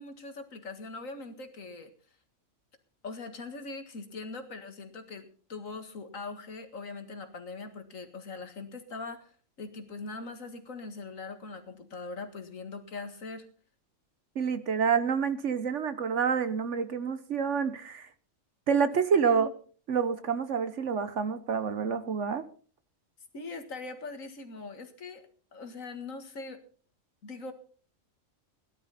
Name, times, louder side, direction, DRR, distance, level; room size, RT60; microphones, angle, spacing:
voice 1, 0.0-1.9 3.0-9.3 9.6-13.5 19.2-19.5 23.3-25.2 25.5-26.6 27.2-27.5, left 3 dB, 75° left, 7 dB, 2.2 m, -41 dB
voice 2, 14.3-18.1 18.7-19.5 19.9-22.4, right 6 dB, 65° right, 12 dB, 1.3 m, -28 dB
17.0 x 11.5 x 4.1 m, 0.43 s
omnidirectional pair, 1.4 m